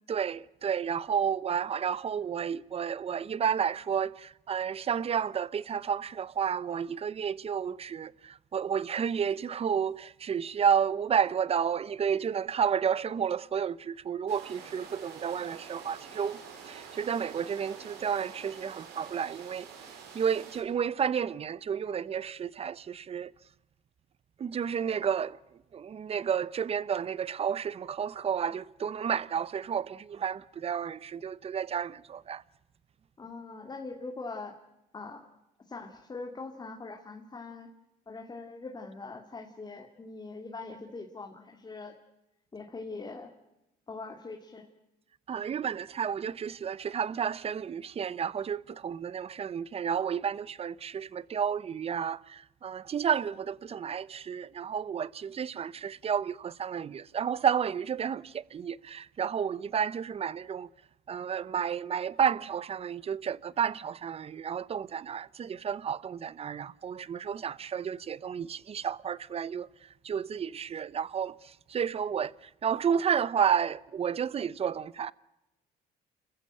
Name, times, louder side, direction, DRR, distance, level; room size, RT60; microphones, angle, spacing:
voice 1, 0.1-16.4 16.7-19.7 20.1-23.3 24.4-25.4 25.7-32.4 45.3-60.7 61.1-69.7 70.0-71.4 71.7-72.3 72.6-75.1, right 7 dB, 35° right, 0.8 m, -31 dB
sound 1, 14.3-20.6, right 6 dB, 90° right, 5.6 m, -47 dB
voice 2, 33.2-34.6 34.9-35.2 35.7-37.7 38.1-41.9 42.5-43.3 43.9-44.7, left 3 dB, 25° left, 2.5 m, -42 dB
29.5 x 15.0 x 8.9 m
cardioid pair, 110°, 17 cm